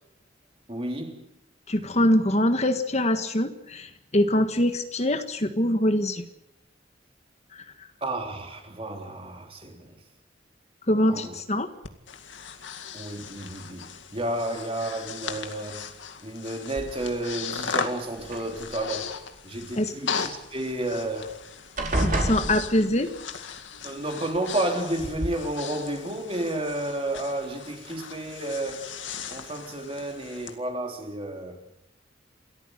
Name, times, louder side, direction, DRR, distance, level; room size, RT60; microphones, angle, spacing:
voice 1, 0.7-1.3 8.0-10.0 11.1-11.4 12.9-15.9 16.2-21.4 23.8-29.0 29.3-31.6, right 1 dB, 30° right, 3.4 m, -31 dB
voice 2, 1.7-6.3 7.5-7.6 10.9-11.7 19.8-19.9 22.0-23.1, left 1 dB, 35° left, 1.5 m, -24 dB
Breathing, 11.8-30.5, left 6 dB, 85° left, 2.2 m, -38 dB
sound 1, 16.8-17.3 18.2-19.0 20.8-20.9 21.2-21.4 21.8-23.2 24.3-24.4 25.0-25.3, right 1 dB, 45° right, 4.9 m, -29 dB
28.5 x 14.0 x 8.0 m
head